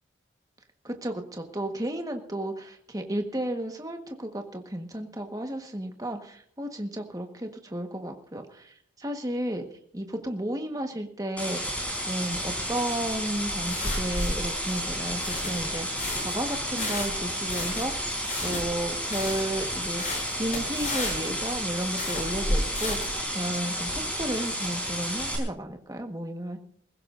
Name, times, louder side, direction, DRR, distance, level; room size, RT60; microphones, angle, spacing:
voice 1, 0.8-11.6 12.0-17.9 18.4-20.0 20.3-23.1 23.3-26.6, right 1 dB, 20° right, 5 dB, 1.4 m, -33 dB
sound 1, 11.4-25.4, equal, 5° left, 3.9 m, -32 dB
sound 2, 13.1-23.2, left 1 dB, 40° left, 6.6 m, -33 dB
21.0 x 16.0 x 2.6 m, 0.62 s
head